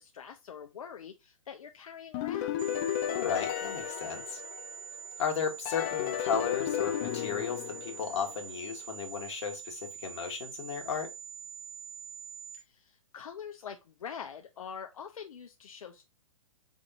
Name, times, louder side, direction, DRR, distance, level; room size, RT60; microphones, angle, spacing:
voice 1, 0.0-2.6 12.6-16.0, left 7 dB, 80° left, 0.5 m, -44 dB
sound 1, 2.1-5.0 5.7-8.5, left 11 dB, 30° left, 0.4 m, -34 dB
sound 2, 2.6-12.6, right 8 dB, 25° right, 0.7 m, -45 dB
voice 2, 3.1-4.4 5.2-11.1, left 6 dB, 55° left, 1.3 m, -34 dB
4.0 x 3.6 x 2.3 m
hypercardioid pair, 135°, 18 cm